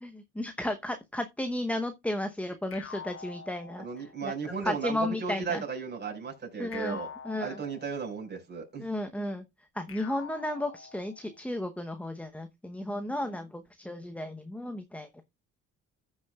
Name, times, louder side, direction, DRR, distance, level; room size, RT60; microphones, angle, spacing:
voice 1, 0.0-3.9 4.2-4.3 4.6-5.6 6.6-7.0 7.2-7.6 8.8-9.4 9.7-15.2, left 1 dB, 5° left, 0.8 m, -34 dB
sound 1, 2.7-4.3 6.7-8.3 9.9-11.4, left 6 dB, 40° left, 1.3 m, -46 dB
voice 2, 3.8-7.1 7.4-8.9, right 5 dB, 35° right, 5.0 m, -35 dB
14.5 x 6.4 x 2.3 m
cardioid pair, 100°, 31 cm